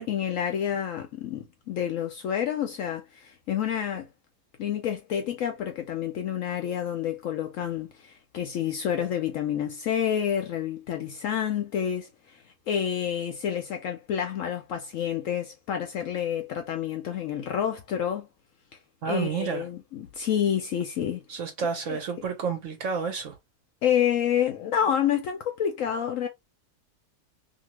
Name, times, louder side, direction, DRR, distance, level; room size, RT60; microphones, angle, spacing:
voice 1, 0.0-4.1 4.6-18.3 19.0-21.2 21.9-22.0 23.8-26.3, left 9 dB, 70° left, 0.8 m, -29 dB
voice 2, 19.0-19.6 21.3-23.3, right 6 dB, 60° right, 0.9 m, -30 dB
2.7 x 2.6 x 2.9 m
omnidirectional pair, 1.8 m